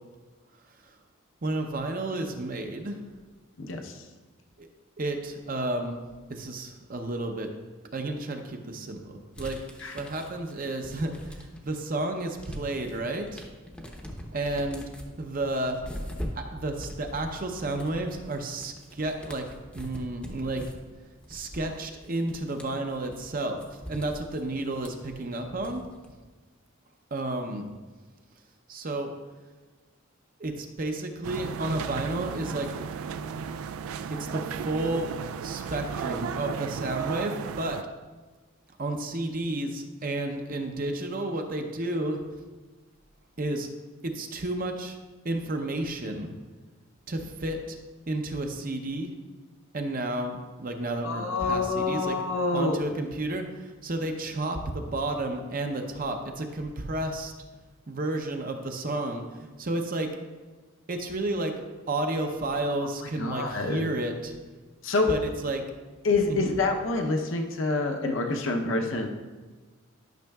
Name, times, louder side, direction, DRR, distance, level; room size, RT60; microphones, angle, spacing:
voice 1, 1.4-3.0 4.6-4.7 5.0-6.0 6.3-7.5 7.9-9.6 9.9-13.5 14.3-14.8 15.2-15.8 16.3-19.5 19.7-20.6 21.3-23.6 23.9-25.8 27.1-27.7 28.7-29.1 30.4-32.7 34.1-35.1 35.4-37.8 38.8-42.2 43.4-43.7 44.0-45.0 45.2-46.3 47.1-47.8 48.1-49.1 49.7-52.1 52.5-57.3 57.9-60.2 60.9-64.3 65.1-65.6 66.3-66.5, right 2 dB, 40° right, 4 dB, 0.7 m, -31 dB
voice 2, 3.6-4.1 9.8-10.0 51.0-52.8 63.0-63.9 64.8-65.1 66.0-69.1, left 3 dB, 65° left, 3 dB, 0.7 m, -27 dB
sound 1, 9.3-11.8 12.1-26.1, equal, 5° left, 0.7 m, -42 dB
sound 2, 31.2-37.8, right 7 dB, 80° right, 0.3 m, -34 dB
11.5 x 6.2 x 2.3 m, 1.3 s
head